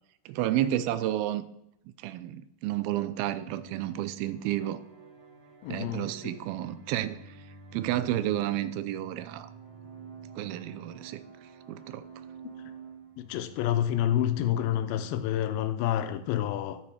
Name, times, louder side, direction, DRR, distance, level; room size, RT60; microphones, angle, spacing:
voice 1, 0.3-1.4 2.0-4.8 5.7-7.4 7.7-9.5 10.4-11.2 11.7-12.1, right 13 dB, 85° right, 2.4 m, -31 dB
sound 1, 3.4-15.7, right 4 dB, 50° right, 1.7 m, -49 dB
voice 2, 5.6-6.1 13.2-16.8, left 11 dB, 85° left, 2.5 m, -28 dB
11.5 x 4.1 x 4.8 m
omnidirectional pair, 4.3 m